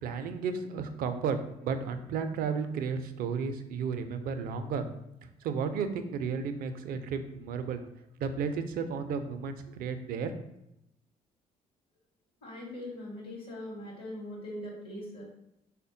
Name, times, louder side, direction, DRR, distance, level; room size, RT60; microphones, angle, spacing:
voice 1, 0.0-4.9 5.4-7.8 8.2-10.3, right 6 dB, 50° right, 9 dB, 0.4 m, -33 dB
voice 2, 12.4-15.2, left 1 dB, 60° left, -3 dB, 0.9 m, -41 dB
3.4 x 2.1 x 2.6 m, 0.83 s
figure-of-eight pair, 45°, 19 cm